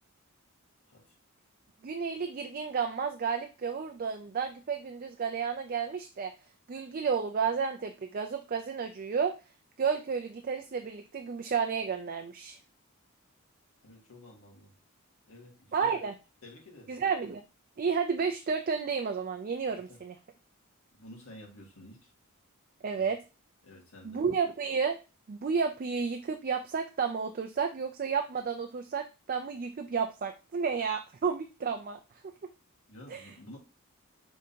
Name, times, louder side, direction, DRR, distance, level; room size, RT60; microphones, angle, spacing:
voice 1, 1.8-6.3 6.7-9.3 9.8-12.6 15.7-16.1 16.9-17.4 17.8-20.2 22.8-23.2 24.0-25.0 25.3-32.0 33.1-33.3, right 6 dB, 40° right, 0.4 m, -31 dB
voice 2, 13.8-14.7 15.3-16.0 16.4-17.0 19.9-20.0 20.9-22.1 22.9-23.1 23.6-24.2 32.9-33.6, left 1 dB, 70° left, 1.7 m, -51 dB
5.2 x 3.6 x 2.8 m
head